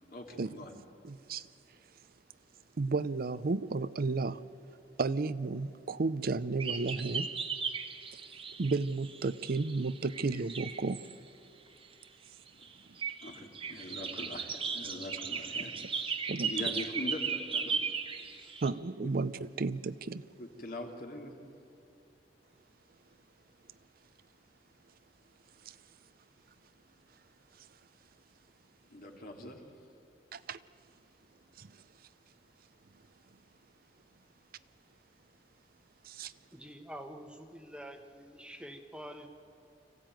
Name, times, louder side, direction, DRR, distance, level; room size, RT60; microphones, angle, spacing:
voice 1, 0.1-0.7 13.2-17.8 18.3-18.6 19.0-19.1 20.4-21.4 28.9-29.6, left 1 dB, 55° left, 2.7 m, -43 dB
voice 2, 1.0-1.5 2.8-4.4 5.0-7.3 8.1-8.2 8.6-11.0 12.9-13.0 16.3-16.7 18.6-20.2 25.6-25.8 27.6-27.7 30.3-30.6 31.6-31.8 36.0-36.3, right 3 dB, 55° right, 0.6 m, -33 dB
sound 1, 6.6-11.1 12.5-12.7 13.0-18.7, right 5 dB, 30° right, 1.3 m, -37 dB
voice 3, 36.5-39.3, equal, 5° right, 1.1 m, -47 dB
25.5 x 15.5 x 9.1 m
head